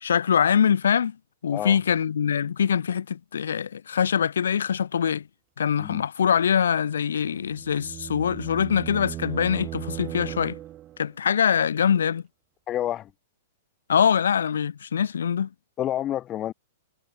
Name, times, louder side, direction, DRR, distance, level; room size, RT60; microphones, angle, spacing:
voice 1, 0.0-1.2 1.4-5.3 5.6-10.6 11.0-12.2 13.9-15.5, left 8 dB, 85° left, 0.3 m, -23 dB
sound 1, 7.2-11.1, right 13 dB, 30° right, 2.0 m, -37 dB
voice 2, 12.7-13.1 15.8-16.5, left 12 dB, 25° left, 0.5 m, -29 dB
hypercardioid pair, 130°, 0 cm